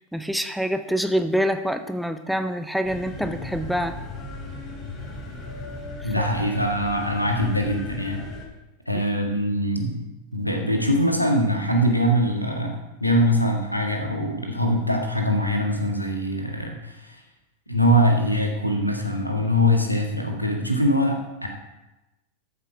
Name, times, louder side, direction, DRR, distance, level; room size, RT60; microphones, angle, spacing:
voice 1, 0.1-4.0 6.2-6.3, equal, ahead, 9 dB, 0.6 m, -26 dB
sound 1, 2.8-8.5, left 2 dB, 30° left, 3.7 m, -37 dB
voice 2, 6.0-8.2 8.9-10.0 10.3-17.2 17.7-21.5, equal, 90° left, 2 dB, 1.8 m, -23 dB
13.0 x 7.3 x 4.9 m, 1.0 s
figure-of-eight pair, 90°, 0 cm